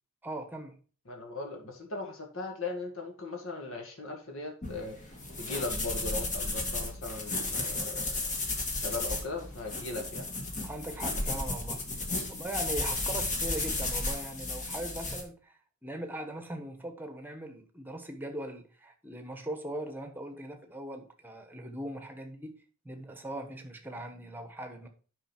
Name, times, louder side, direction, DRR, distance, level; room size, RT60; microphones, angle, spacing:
voice 1, 0.2-0.8 10.6-11.8 12.3-22.5 22.8-24.9, right 1 dB, 10° right, 5 dB, 1.2 m, -40 dB
voice 2, 1.1-8.3 8.7-10.3, left 3 dB, 60° left, 2 dB, 2.0 m, -39 dB
sound 1, 4.6-15.2, left 2 dB, 35° left, 1.7 m, -34 dB
8.9 x 5.7 x 4.4 m, 0.39 s
head